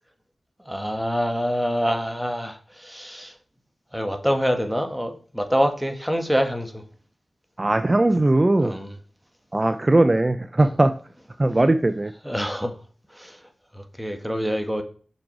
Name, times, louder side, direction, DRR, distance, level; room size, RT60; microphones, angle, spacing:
voice 1, 0.7-3.3 3.9-6.8 8.6-8.9 10.6-10.7 12.2-12.7 13.1-13.4 13.7-14.8, equal, ahead, 6 dB, 1.8 m, -26 dB
voice 2, 7.6-8.7 9.5-10.9 11.4-12.1, right 2 dB, 35° right, 10 dB, 0.6 m, -19 dB
6.7 x 6.2 x 4.9 m, 0.41 s
cardioid pair, 45°, 0 cm